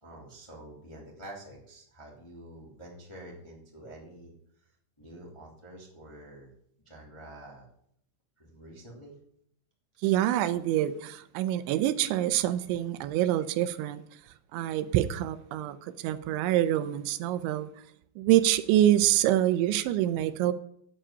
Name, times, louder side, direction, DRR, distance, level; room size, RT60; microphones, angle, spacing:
voice 1, 0.0-4.3 5.0-6.5 6.8-7.7 8.4-9.1, right 1 dB, 10° left, 1.5 m, -47 dB
voice 2, 10.0-14.0 14.5-17.7 18.2-20.5, right 13 dB, 85° right, 3.0 m, -26 dB
8.9 x 7.5 x 8.6 m
omnidirectional pair, 5.3 m